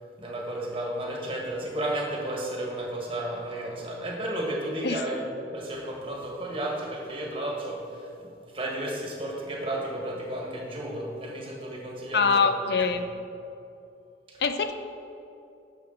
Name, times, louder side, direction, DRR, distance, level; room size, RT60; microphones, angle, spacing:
voice 1, 0.2-5.2 5.5-12.5 12.9-13.0 14.3-14.4, right 1 dB, 30° right, -2 dB, 1.5 m, -33 dB
voice 2, 12.1-13.1 14.4-14.7, left 5 dB, 60° left, 8 dB, 0.5 m, -23 dB
10.0 x 7.2 x 3.8 m, 2.7 s
head